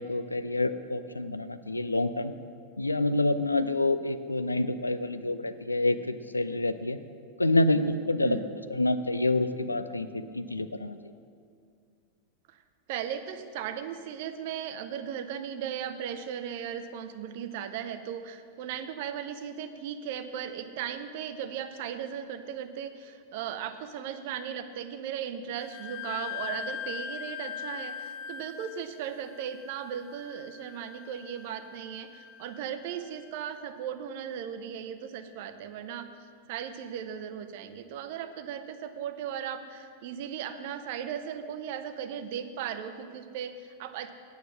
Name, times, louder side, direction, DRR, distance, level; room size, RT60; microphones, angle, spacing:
voice 1, 0.0-2.3 2.8-7.0 7.4-8.4 8.7-11.0, left 2 dB, 80° left, 11 dB, 0.4 m, -27 dB
voice 2, 8.2-8.5 12.5-12.6 12.9-36.1 36.5-44.1, right 8 dB, 50° right, 9 dB, 0.7 m, -37 dB
Wind instrument woodwind instrument, 25.6-33.0, left 8 dB, 30° left, 0.6 m, -41 dB
9.2 x 7.2 x 7.4 m, 2.2 s
figure-of-eight pair, 90°, 0 cm